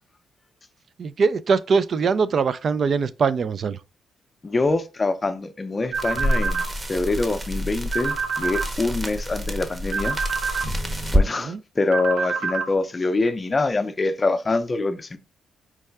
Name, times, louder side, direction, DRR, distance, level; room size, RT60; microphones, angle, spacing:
voice 1, 1.0-3.8 11.4-11.6, right 5 dB, 55° right, 0.3 m, -22 dB
voice 2, 4.4-10.2 10.6-10.7 11.1-15.2, left 3 dB, 30° left, 0.5 m, -25 dB
sound 1, 5.9-11.3, equal, 25° right, 0.8 m, -27 dB
sound 2, 5.9-6.7 7.9-8.7 9.9-10.7 11.9-12.7, right 5 dB, 90° right, 0.7 m, -27 dB
4.6 x 2.1 x 3.3 m
cardioid pair, 75°, 0 cm